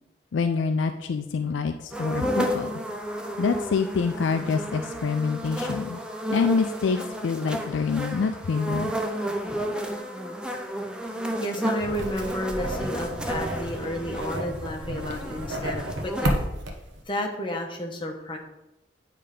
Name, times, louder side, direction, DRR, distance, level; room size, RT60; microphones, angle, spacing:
voice 1, 0.3-2.7 3.4-6.0 6.3-8.9, left 5 dB, 75° left, 7 dB, 0.4 m, -26 dB
sound 1, 1.9-16.4, equal, 5° right, 0.5 m, -32 dB
voice 2, 11.4-16.4 17.1-18.4, left 1 dB, 25° left, 2 dB, 0.9 m, -31 dB
sound 2, 11.8-17.0, right 1 dB, 80° right, 1.0 m, -32 dB
8.7 x 3.3 x 5.0 m, 0.94 s
head